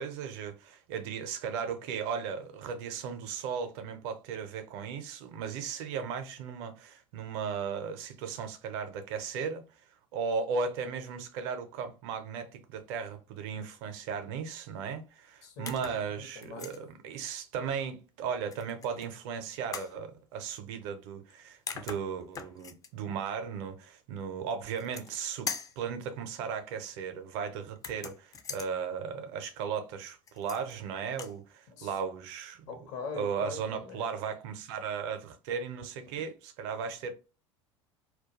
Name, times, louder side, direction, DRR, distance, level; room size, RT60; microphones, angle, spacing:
voice 1, 0.0-9.6 10.1-25.5 25.8-32.7 33.1-37.1, right 6 dB, 60° right, 0.5 m, -36 dB
voice 2, 15.4-16.7 31.7-31.9 32.7-34.1, left 5 dB, 55° left, 0.7 m, -42 dB
sound 1, 15.7-16.0 16.4-16.8 18.5-19.1 19.7-20.0 21.3-21.4 21.7-22.9 24.6-25.2 25.5-25.8 27.8-28.7 30.3-30.8 31.1-31.4, left 6 dB, 20° left, 0.3 m, -41 dB
2.2 x 2.2 x 2.8 m
figure-of-eight pair, 70°, 16 cm